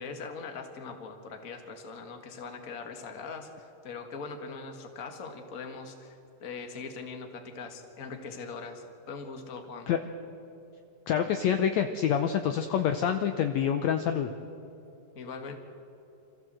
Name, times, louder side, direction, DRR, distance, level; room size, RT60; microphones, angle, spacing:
voice 1, 0.0-9.9 15.1-15.6, left 4 dB, 35° left, 4 dB, 1.5 m, -41 dB
voice 2, 11.1-14.3, left 8 dB, 75° left, 7 dB, 1.7 m, -27 dB
26.5 x 14.5 x 7.7 m, 2.9 s
omnidirectional pair, 3.9 m